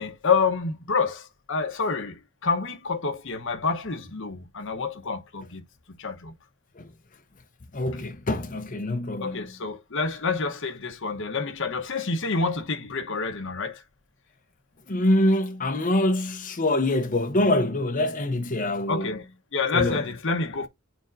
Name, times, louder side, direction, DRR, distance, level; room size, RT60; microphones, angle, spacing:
voice 1, 0.0-5.6 6.0-6.3 9.2-13.8 18.9-19.2 19.5-20.7, left 4 dB, 60° left, 1.0 m, -28 dB
voice 2, 7.7-9.5 14.9-19.1 19.7-20.1, left 1 dB, 35° left, 0.8 m, -25 dB
9.1 x 4.4 x 2.5 m
head